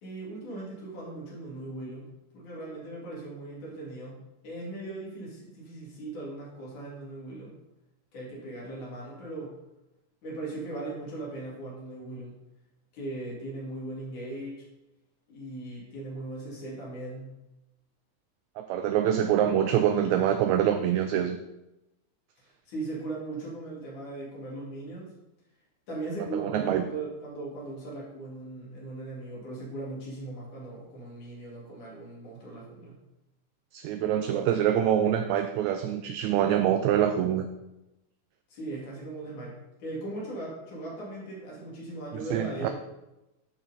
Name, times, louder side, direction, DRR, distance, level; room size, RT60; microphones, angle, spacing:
voice 1, 0.0-2.1 2.3-7.6 8.1-9.5 10.2-12.4 12.9-14.7 15.3-17.3 22.4-25.1 25.9-33.0 38.5-42.7, right 2 dB, 75° left, -5 dB, 4.2 m, -39 dB
voice 2, 18.6-21.4 26.3-26.8 33.7-37.5 42.1-42.7, right 10 dB, 80° right, 7 dB, 1.7 m, -25 dB
11.0 x 4.5 x 4.2 m, 0.96 s
omnidirectional pair, 3.5 m